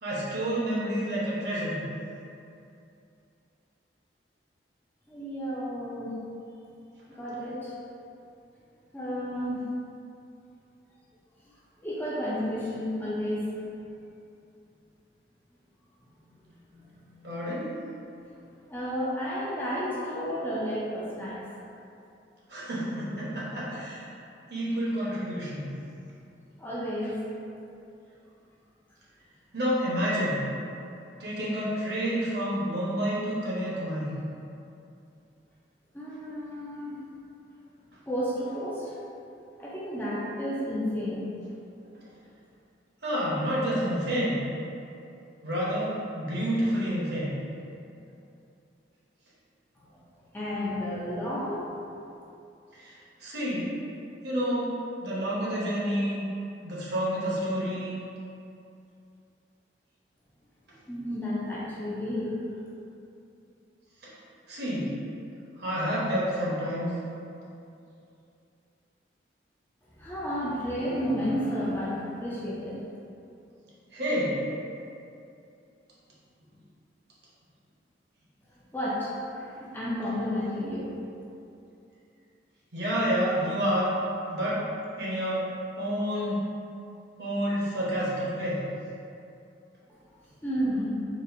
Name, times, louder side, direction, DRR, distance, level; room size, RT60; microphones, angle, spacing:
voice 1, 0.0-1.8 17.2-17.7 22.5-24.1 24.5-25.7 29.5-30.4 31.2-34.1 43.0-44.4 45.4-47.3 52.7-52.9 53.2-53.7 54.2-54.7 55.0-56.3 56.6-58.0 64.5-64.9 65.6-66.9 73.9-74.4 82.7-83.9 84.3-84.6 85.0-86.4 87.2-88.6, equal, 60° right, -7 dB, 0.8 m, -29 dB
voice 2, 5.1-6.1 7.1-7.7 8.9-9.6 11.8-13.5 16.7-17.2 18.7-21.4 26.6-27.2 35.9-36.9 38.1-38.9 39.6-41.3 50.3-51.8 60.9-62.4 70.0-72.8 78.7-79.1 79.4-80.9 90.4-90.9, equal, 10° left, -7 dB, 0.4 m, -31 dB
4.0 x 2.5 x 2.6 m, 2.6 s
head